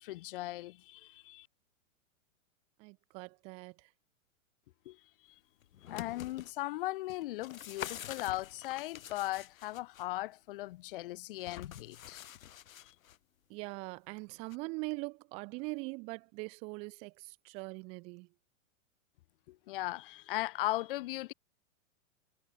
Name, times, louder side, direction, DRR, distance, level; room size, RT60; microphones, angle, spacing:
voice 1, 0.0-1.5 4.8-5.0 5.9-12.2 12.8-12.9 19.5-21.3, left 17 dB, 40° left, 1.5 m, -38 dB
voice 2, 2.8-3.9 13.5-18.3, right 28 dB, 15° right, 0.6 m, -42 dB
sound 1, 5.6-6.5 7.1-10.1 11.4-13.2 14.5-14.6, left 11 dB, 90° left, 1.3 m, -46 dB
hypercardioid pair, 160°, 40 cm